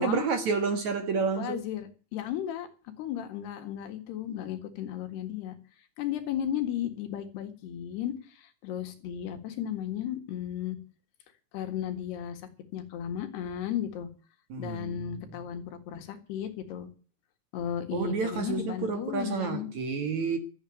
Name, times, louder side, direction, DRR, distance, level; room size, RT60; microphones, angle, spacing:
voice 1, 0.0-1.6 14.5-15.0 17.9-20.4, right 5 dB, 55° right, 2.4 m, -30 dB
voice 2, 1.4-2.7 3.0-5.6 6.0-10.8 11.5-12.4 12.7-14.1 14.6-16.9 17.5-19.7, left 10 dB, 75° left, 3.9 m, -34 dB
13.5 x 8.7 x 9.3 m
omnidirectional pair, 4.8 m